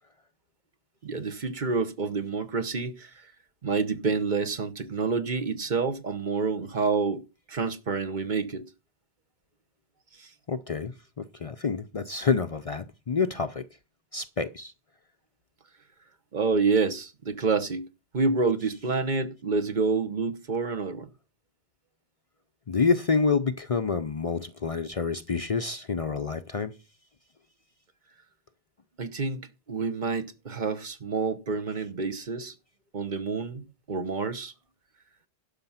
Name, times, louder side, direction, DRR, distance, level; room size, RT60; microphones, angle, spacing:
voice 1, 1.0-3.1 3.6-7.2 7.5-8.6 10.2-10.3 16.3-17.8 18.1-21.1 29.0-29.4 29.7-32.5 32.9-34.5, right 4 dB, 50° right, 1.1 m, -28 dB
voice 2, 10.5-13.6 14.1-14.7 22.7-26.7, left 5 dB, 40° left, 0.6 m, -28 dB
12.0 x 6.7 x 5.6 m
omnidirectional pair, 1.0 m